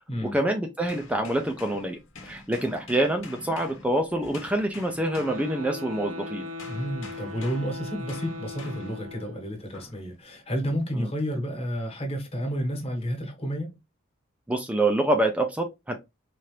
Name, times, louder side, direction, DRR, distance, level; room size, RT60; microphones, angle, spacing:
voice 1, 0.2-2.0 2.2-6.5 10.9-11.1 14.5-15.9, right 1 dB, 5° right, 0.4 m, -26 dB
sound 1, 0.8-6.1 6.6-9.1 9.7-10.0, left 3 dB, 80° left, 1.1 m, -46 dB
sound 2, 5.0-9.5, left 2 dB, 70° right, 1.0 m, -39 dB
voice 2, 6.7-13.8, equal, 30° left, 1.3 m, -31 dB
4.3 x 2.5 x 3.2 m
head